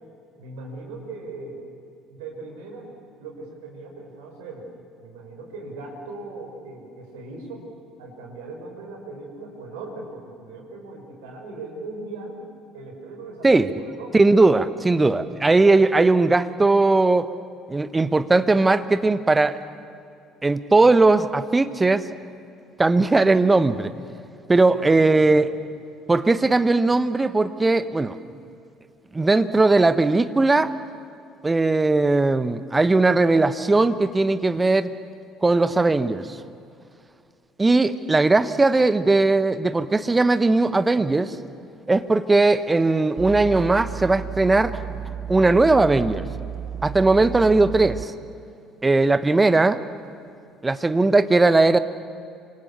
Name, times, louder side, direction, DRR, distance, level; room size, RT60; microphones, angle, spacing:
voice 1, 0.4-1.7 2.1-2.9 3.2-4.7 5.0-7.7 8.0-12.4 12.7-14.1 24.7-25.6, right 3 dB, 70° right, 1 dB, 5.6 m, -39 dB
voice 2, 14.1-17.3 17.7-19.6 20.4-22.1 22.8-23.9 24.5-25.5 26.1-28.2 29.1-30.7 31.4-34.9 35.4-36.3 37.6-41.4 41.9-44.8 45.3-46.3 46.8-48.1 48.8-49.8 50.6-51.8, right 3 dB, 20° right, 12 dB, 1.3 m, -18 dB
sound 1, 43.2-48.0, right 8 dB, 45° right, 0.9 m, -33 dB
29.0 x 25.5 x 7.1 m, 2.5 s
figure-of-eight pair, 55°, 0 cm